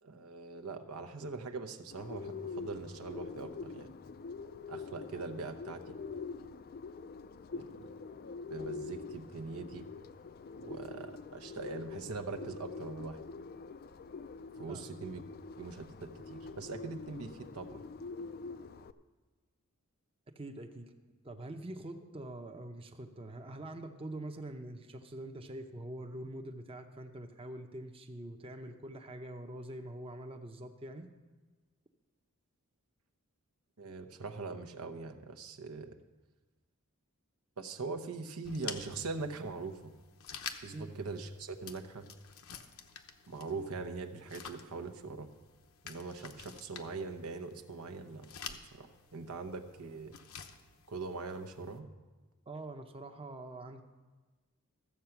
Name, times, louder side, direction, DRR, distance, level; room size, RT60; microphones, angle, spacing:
voice 1, 0.0-3.9 4.7-6.0 7.5-7.9 8.5-9.9 10.6-13.2 14.6-15.2 15.6-17.8 33.8-36.0 37.6-39.9 40.6-42.1 43.3-45.3 45.8-50.1 50.9-51.9, right 4 dB, 85° right, 5 dB, 0.9 m, -42 dB
Bird, 1.9-18.9, left 4 dB, 45° left, 0.4 m, -45 dB
voice 2, 20.4-20.9 21.2-31.1 40.7-40.9 52.5-53.8, right 1 dB, 25° right, 5 dB, 0.7 m, -44 dB
sound 1, 38.4-51.8, left 7 dB, 70° left, 0.9 m, -50 dB
14.0 x 7.7 x 5.9 m, 1.3 s
head